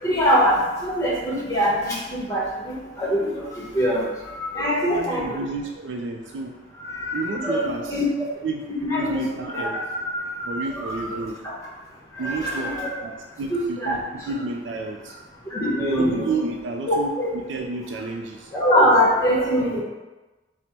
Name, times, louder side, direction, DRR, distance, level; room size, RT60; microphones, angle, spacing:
voice 1, 0.0-5.4 6.8-8.2 8.8-9.2 9.5-11.5 12.1-12.9 13.5-14.3 15.5-16.2 16.9-17.3 18.5-19.8, equal, 20° left, -5 dB, 1.0 m, -23 dB
voice 2, 4.9-6.6 7.1-8.0 8.4-9.8 10.4-11.4 12.2-15.1 16.0-18.5, right 3 dB, 85° right, 2 dB, 0.3 m, -31 dB
4.1 x 2.1 x 4.4 m, 1.2 s
head